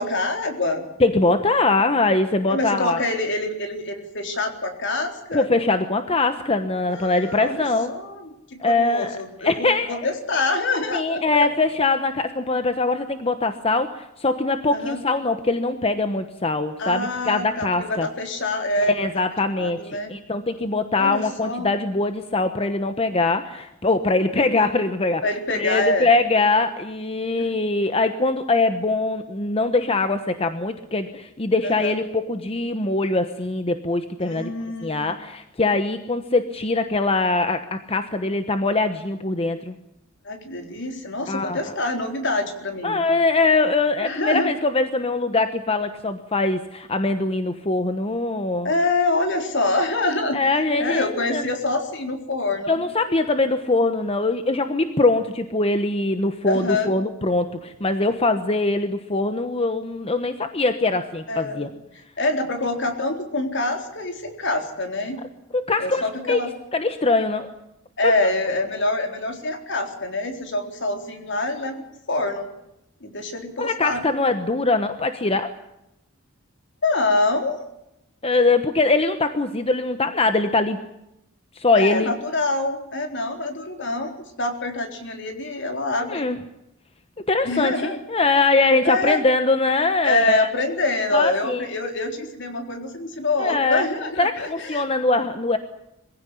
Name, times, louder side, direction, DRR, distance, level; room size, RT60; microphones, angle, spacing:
voice 1, 0.0-0.9 2.5-5.5 6.8-11.5 14.7-15.0 16.8-18.9 19.6-20.1 20.9-21.8 25.2-26.1 27.4-27.5 31.6-31.9 34.2-35.1 40.2-43.0 44.0-44.5 48.6-50.4 50.8-52.8 56.4-56.9 61.3-61.7 62.2-65.2 65.8-66.5 68.0-72.5 73.0-74.0 76.8-77.6 81.8-86.3 87.4-88.0 88.8-89.2 90.0-95.0, left 2 dB, 60° left, 5 dB, 3.9 m, -25 dB
voice 2, 1.0-3.0 5.3-7.9 8.6-10.1 10.9-18.1 18.8-25.2 25.5-34.5 34.8-39.7 41.3-41.7 42.8-48.7 50.3-51.4 52.7-61.7 65.5-66.4 66.7-67.5 68.0-68.1 73.6-75.5 78.2-80.8 81.5-82.1 86.1-86.4 87.3-90.5 91.1-91.6 93.4-93.8 94.2-95.6, left 3 dB, 30° left, 9 dB, 1.1 m, -22 dB
23.0 x 16.0 x 10.0 m, 0.86 s
head